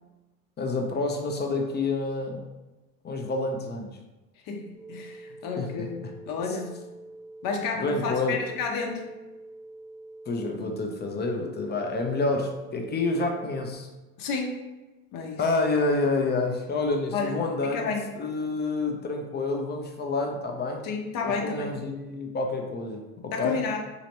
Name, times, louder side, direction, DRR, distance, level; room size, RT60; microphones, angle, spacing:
voice 1, 0.6-2.4 3.0-3.9 5.6-5.9 6.5-6.6 7.8-8.4 10.3-13.9 15.4-20.8 21.2-23.6, left 3 dB, 25° left, 3 dB, 0.7 m, -28 dB
voice 2, 4.5-6.8 7.4-9.0 14.2-14.6 15.1-15.4 17.1-17.3 17.6-18.0 20.8-21.7 23.3-23.8, left 4 dB, 50° left, 2 dB, 0.9 m, -31 dB
sound 1, 4.7-13.7, right 2 dB, 75° left, 0.9 m, -46 dB
4.1 x 3.0 x 2.9 m, 1.1 s
hypercardioid pair, 75°, 43 cm